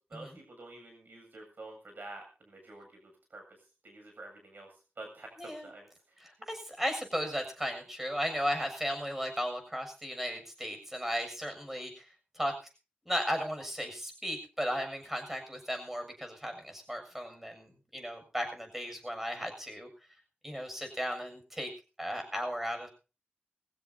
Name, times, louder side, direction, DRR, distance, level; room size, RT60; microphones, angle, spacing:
voice 1, 0.0-6.2, right 2 dB, 65° right, 3 dB, 7.6 m, -49 dB
voice 2, 5.4-5.7 6.2-12.1 12.3-12.5 13.1-19.9 20.4-21.7 22.0-22.9, equal, 10° right, 5 dB, 7.0 m, -35 dB
24.5 x 15.5 x 2.8 m, 0.34 s
wide cardioid pair, 70°, 3 cm